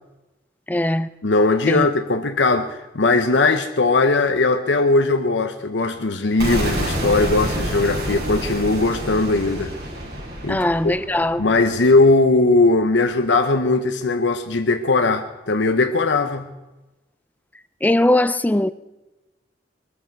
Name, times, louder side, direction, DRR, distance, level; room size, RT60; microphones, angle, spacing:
voice 1, 0.7-1.1 1.7-1.9 10.5-11.4 17.8-18.7, left 1 dB, 10° left, 0.4 m, -19 dB
voice 2, 1.2-9.7 10.4-10.9 11.4-16.5, left 3 dB, 85° left, 0.9 m, -19 dB
sound 1, 6.4-12.3, right 1 dB, 60° right, 6.4 m, -28 dB
22.0 x 13.5 x 4.7 m
head